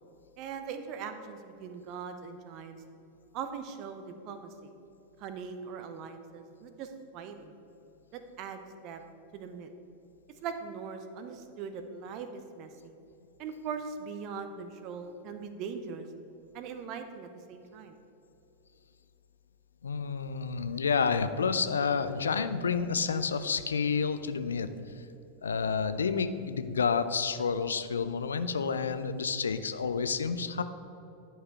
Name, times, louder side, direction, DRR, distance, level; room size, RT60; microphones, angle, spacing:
voice 1, 0.4-2.8 3.3-4.7 5.2-7.5 8.1-9.0 9.3-9.7 10.4-12.9 13.4-16.1 16.5-18.0, right 6 dB, 40° right, 8 dB, 0.7 m, -41 dB
voice 2, 19.8-24.7 25.4-30.6, left 5 dB, 70° left, 11 dB, 0.4 m, -29 dB
11.0 x 4.7 x 4.6 m, 2.9 s
figure-of-eight pair, 90°, 0 cm